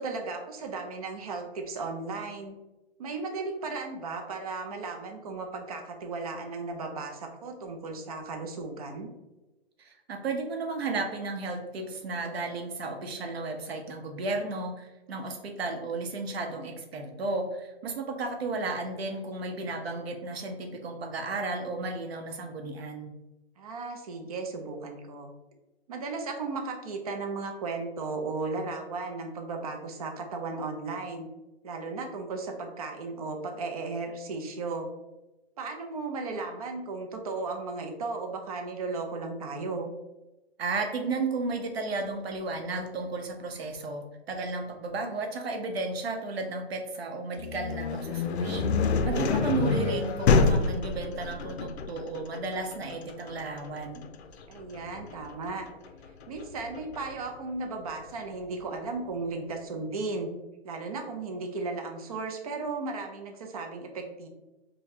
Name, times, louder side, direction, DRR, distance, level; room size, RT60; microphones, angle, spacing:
voice 1, 0.0-2.5 3.0-9.1 23.6-25.3 25.9-31.3 31.6-34.9 35.6-39.9 54.5-55.7 56.3-60.3 60.6-64.3, right 3 dB, 35° right, 4 dB, 0.5 m, -35 dB
voice 2, 9.8-23.1 40.6-48.7 49.0-54.1, right 3 dB, 70° right, 3 dB, 0.9 m, -33 dB
sound 1, 47.4-57.2, left 4 dB, 80° left, 0.5 m, -28 dB
5.1 x 2.3 x 2.7 m, 1.0 s
hypercardioid pair, 160°, 32 cm